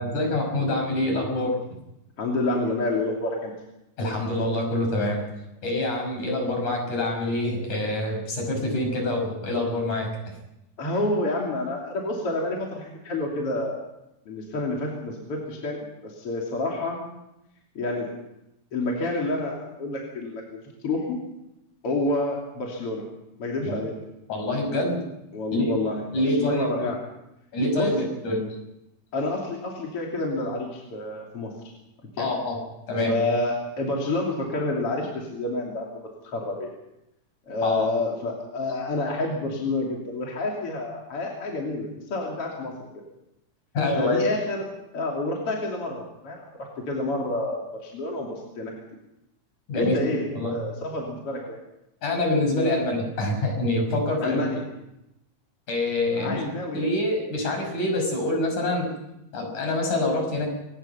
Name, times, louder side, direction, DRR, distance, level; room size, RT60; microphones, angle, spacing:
voice 1, 0.0-1.6 4.0-5.2 5.6-10.1 23.6-23.8 24.3-25.0 25.5-25.7 26.1-26.9 27.5-28.4 32.2-32.6 32.9-33.2 37.6-37.9 43.7-44.2 49.7-50.5 52.0-54.5 55.7-56.4 56.7-58.9 59.3-60.5, left 1 dB, 60° left, 2 dB, 7.2 m, -25 dB
voice 2, 2.2-3.5 10.8-13.8 14.3-17.0 17.8-18.1 18.7-21.2 21.8-23.1 23.4-23.9 25.3-27.0 27.7-27.9 29.1-31.5 32.2-32.3 33.1-36.7 37.5-42.7 44.0-44.6 44.9-48.7 49.7-51.6 53.0-53.1 54.2-54.6 56.1-56.9, left 2 dB, 40° left, -1 dB, 3.6 m, -29 dB
24.5 x 19.5 x 5.7 m, 0.89 s
omnidirectional pair, 4.0 m